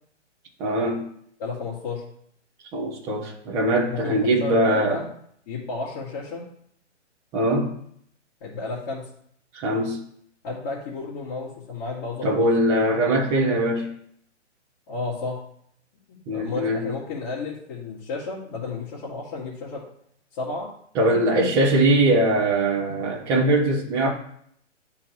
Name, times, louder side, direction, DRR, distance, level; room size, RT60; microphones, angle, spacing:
voice 1, 0.6-1.0 2.7-5.0 7.3-7.7 9.5-10.0 12.2-13.9 16.3-16.9 20.9-24.1, right 1 dB, 10° right, -6 dB, 0.5 m, -21 dB
voice 2, 1.4-2.0 3.9-5.1 5.5-6.5 8.4-9.1 10.4-13.2 14.9-15.4 16.1-19.8 20.3-20.7 21.1-21.5 22.8-23.0, left 3 dB, 40° left, -8 dB, 2.1 m, -32 dB
10.5 x 3.8 x 3.0 m, 0.68 s
hypercardioid pair, 140°, 36 cm